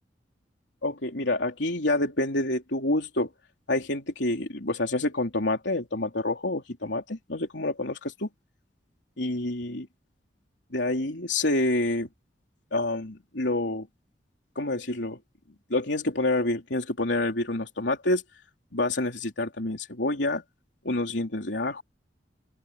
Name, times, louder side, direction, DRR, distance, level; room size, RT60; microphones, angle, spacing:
voice 1, 0.8-3.3 3.7-8.3 9.2-9.9 10.7-12.1 12.7-13.9 14.5-15.2 15.7-18.2 18.7-20.4 20.8-21.8, left 2 dB, 85° left, 3.3 m, -27 dB
open air
head